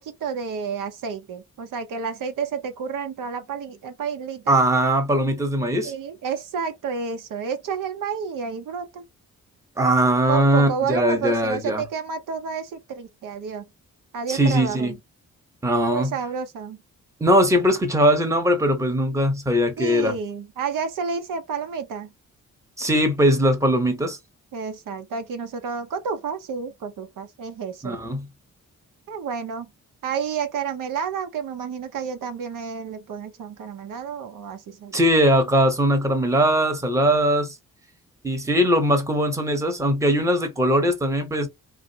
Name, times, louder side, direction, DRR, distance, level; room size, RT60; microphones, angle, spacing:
voice 1, 0.0-4.6 5.8-9.0 10.3-13.6 14.1-15.0 15.9-16.8 19.8-22.1 24.5-28.0 29.1-29.7 30.0-35.0, right 6 dB, 80° right, 0.7 m, -30 dB
voice 2, 4.5-5.9 9.8-11.8 14.3-14.9 15.6-16.1 17.2-20.1 22.8-24.2 27.8-28.3 34.9-37.5 38.2-41.5, equal, 10° right, 0.9 m, -20 dB
3.2 x 2.5 x 2.7 m
wide cardioid pair, 120°, 32 cm